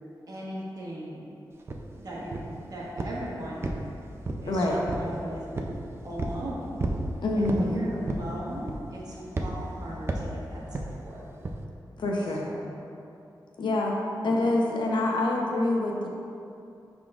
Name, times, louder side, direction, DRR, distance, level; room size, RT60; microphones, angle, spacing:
voice 1, 0.3-1.2 2.0-2.4 2.7-3.7 4.4-5.4 6.0-6.6 7.4-11.2 12.4-12.6 14.2-14.4, right 1 dB, 55° right, -5 dB, 1.2 m, -38 dB
sound 1, 1.7-1.8 2.3-2.6 3.0-3.3 3.6-4.5 4.9-5.2 5.6-5.8 6.2-6.4 6.8-7.1 7.4-7.7 8.1-8.3 8.7-9.0 9.4-9.6 10.1-10.3 10.7-10.9 11.4-11.6, right 2 dB, 30° right, 0.4 m, -31 dB
voice 2, 4.5-4.8 7.2-7.8 12.0-12.5 13.6-13.9 14.2-16.1, left 2 dB, 75° left, -2 dB, 0.8 m, -26 dB
11.0 x 3.7 x 2.4 m, 2.7 s
wide cardioid pair, 155°, 8 cm